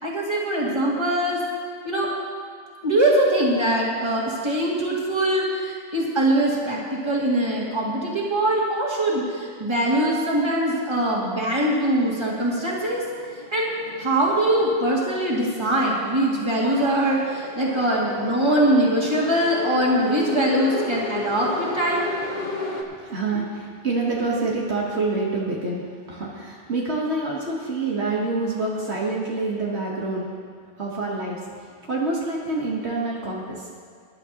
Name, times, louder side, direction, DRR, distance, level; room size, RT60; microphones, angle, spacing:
voice 1, 0.0-1.4 1.8-2.1 2.8-13.0 13.5-22.1, right 1 dB, 20° right, -5 dB, 2.3 m, -22 dB
sound 1, 12.2-22.8, left 3 dB, 40° left, 1.2 m, -34 dB
voice 2, 23.0-30.3 30.8-31.4 31.9-33.7, right 3 dB, 65° right, -4 dB, 1.6 m, -27 dB
18.5 x 11.0 x 2.9 m, 2.1 s
omnidirectional pair, 1.2 m